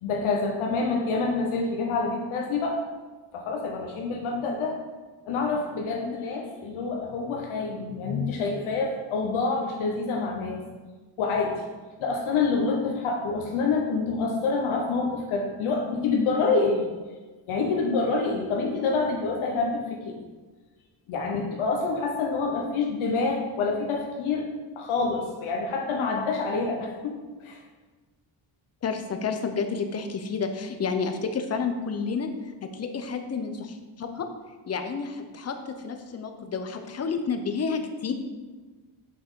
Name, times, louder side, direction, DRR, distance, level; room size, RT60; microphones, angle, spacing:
voice 1, 0.0-2.8 3.3-4.8 5.3-10.6 11.2-11.6 12.0-16.9 17.5-20.2 21.1-24.5 24.8-27.6, left 4 dB, 90° left, 0 dB, 1.0 m, -27 dB
voice 2, 28.8-32.3 32.6-34.3 34.7-38.1, left 5 dB, 35° left, 7 dB, 0.7 m, -30 dB
6.1 x 6.1 x 3.7 m, 1.3 s
cardioid pair, 120°, 47 cm